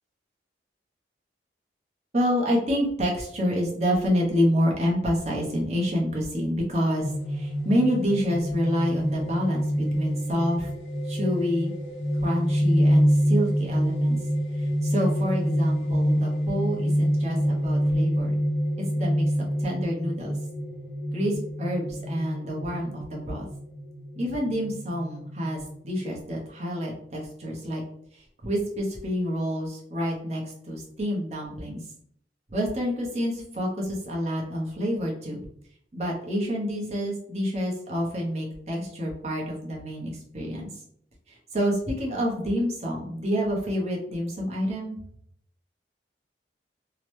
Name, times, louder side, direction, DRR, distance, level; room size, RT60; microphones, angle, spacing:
voice 1, 2.1-10.7 11.1-11.7 12.2-14.2 14.5-18.3 18.8-20.4 21.1-23.5 24.1-25.6 25.8-27.8 28.1-31.8 32.5-35.5 35.9-40.7 41.3-45.0, equal, 40° right, -2 dB, 0.7 m, -28 dB
sound 1, 7.0-26.2, equal, 90° left, 0.7 m, -26 dB
2.9 x 2.0 x 3.1 m, 0.65 s
head